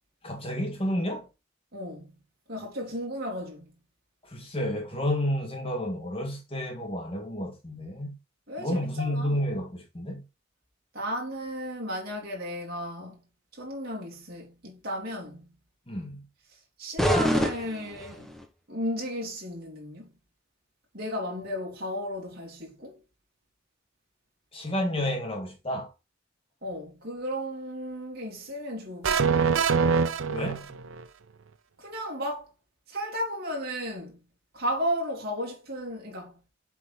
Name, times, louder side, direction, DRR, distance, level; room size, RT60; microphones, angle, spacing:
voice 1, 0.2-1.3 4.2-8.2 8.6-10.2 15.9-16.2 24.5-25.9 30.3-30.7, left 1 dB, 30° left, 1.8 m, -30 dB
voice 2, 1.7-2.1 2.5-3.7 8.5-9.4 10.9-13.2 13.5-15.5 16.8-18.3 18.7-20.1 20.9-23.0 26.6-29.3 31.8-32.5 32.9-34.2 34.5-36.3, equal, 50° right, 2.9 m, -34 dB
sound 1, 17.0-18.5, equal, ahead, 1.0 m, -26 dB
sound 2, 29.0-31.0, right 6 dB, 80° right, 0.6 m, -24 dB
7.9 x 4.7 x 4.0 m
head